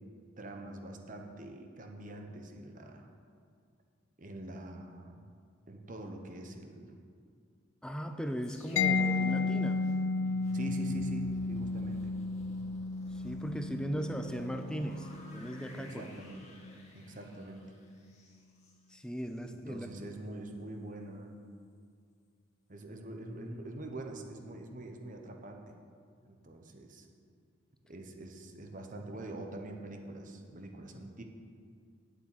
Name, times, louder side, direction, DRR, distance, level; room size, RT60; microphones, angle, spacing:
voice 1, 0.4-3.1 4.2-5.2 5.7-7.0 8.7-8.8 10.5-12.2 15.7-16.4 16.9-17.7 19.5-21.3 22.7-25.8 26.2-27.1 27.9-31.2, right 1 dB, 40° right, 3 dB, 1.1 m, -44 dB
voice 2, 7.8-9.9 13.2-16.0 18.9-19.9, equal, 5° left, 7 dB, 0.6 m, -37 dB
sound 1, 8.4-19.5 19.9-20.1, left 1 dB, 35° left, 1.9 m, -54 dB
Mallet percussion, 8.8-16.3, left 3 dB, 65° left, 0.5 m, -33 dB
8.8 x 8.2 x 9.3 m, 2.2 s
head